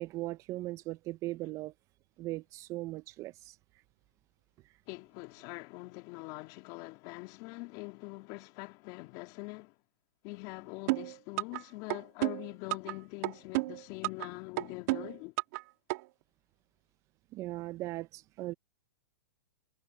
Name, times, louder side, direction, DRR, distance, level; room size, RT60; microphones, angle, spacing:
voice 1, 0.0-1.7 2.2-3.6 17.3-18.5, right 18 dB, 30° right, 0.5 m, -38 dB
voice 2, 4.9-9.7 10.2-15.3, left 24 dB, 40° left, 2.8 m, -44 dB
sound 1, 10.9-11.6 11.9-12.9 13.2-14.3 14.6-15.6 15.9-16.0, right 23 dB, 45° right, 1.8 m, -31 dB
hypercardioid pair, 140°, 11 cm